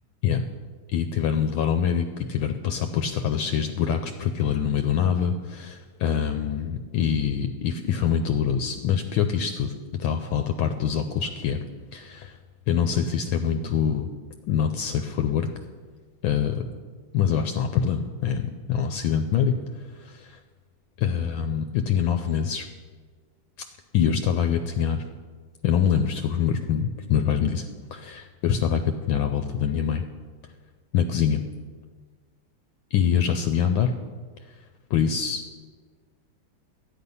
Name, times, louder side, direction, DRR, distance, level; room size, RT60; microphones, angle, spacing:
voice 1, 0.9-11.6 11.9-12.4 12.7-14.1 14.5-15.5 16.2-16.6 17.1-19.6 19.9-20.2 21.0-22.7 23.9-25.0 25.6-27.6 27.9-30.0 30.9-31.4 32.9-33.9 34.5-34.6 34.9-35.4, left 8 dB, 75° left, 6 dB, 1.3 m, -24 dB
12.5 x 9.6 x 5.5 m, 1.5 s
omnidirectional pair, 2.4 m